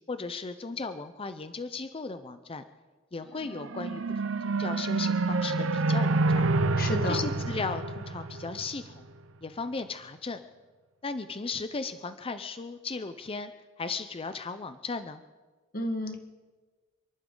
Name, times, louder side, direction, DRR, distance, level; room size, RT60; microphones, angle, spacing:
voice 1, 0.1-2.6 3.1-6.5 7.1-9.0 9.4-10.4 11.0-13.5 13.8-15.2, left 4 dB, 30° left, 10 dB, 0.6 m, -36 dB
sound 1, 3.4-8.9, right 3 dB, 80° right, 0.7 m, -28 dB
voice 2, 6.8-7.2 15.7-16.2, left 1 dB, 50° left, 6 dB, 1.5 m, -31 dB
28.5 x 11.5 x 3.8 m, 1.3 s
head